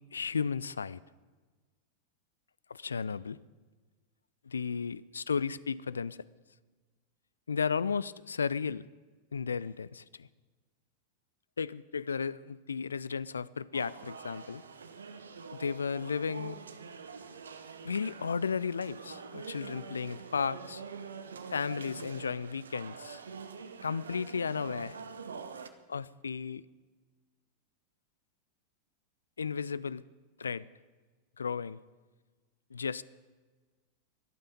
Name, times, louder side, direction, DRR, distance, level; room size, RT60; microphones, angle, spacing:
voice 1, 0.1-1.0 2.7-3.4 4.5-6.2 7.5-8.8 9.3-10.3 11.6-14.6 15.6-16.6 17.8-20.8 21.5-23.2 23.8-25.0 25.9-26.6 29.4-30.0 30.4-30.7 31.4-31.8 32.7-33.0, left 6 dB, 75° left, 20 dB, 0.4 m, -34 dB
sound 1, 13.7-25.7, right 5 dB, 70° right, 0.8 m, -45 dB
23.0 x 8.9 x 5.3 m, 1.3 s
figure-of-eight pair, 90°, 0 cm